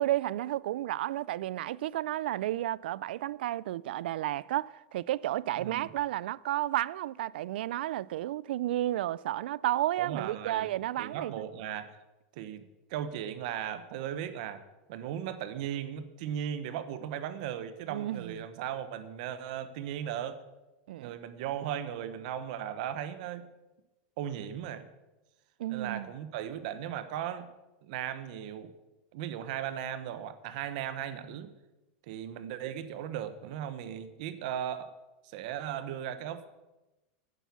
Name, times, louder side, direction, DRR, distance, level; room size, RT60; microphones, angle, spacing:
voice 1, 0.0-11.3 17.9-18.4 20.9-21.1 25.6-26.1, right 14 dB, 80° right, 0.4 m, -32 dB
voice 2, 5.6-5.9 10.0-10.7 11.0-12.0 12.3-14.6 14.9-20.4 21.0-23.5 24.2-24.9 25.7-27.5 27.8-28.7 29.1-31.5 32.1-34.9 35.2-36.5, right 10 dB, 50° right, 1.0 m, -37 dB
9.9 x 9.3 x 7.1 m
supercardioid pair, 180°, 5 cm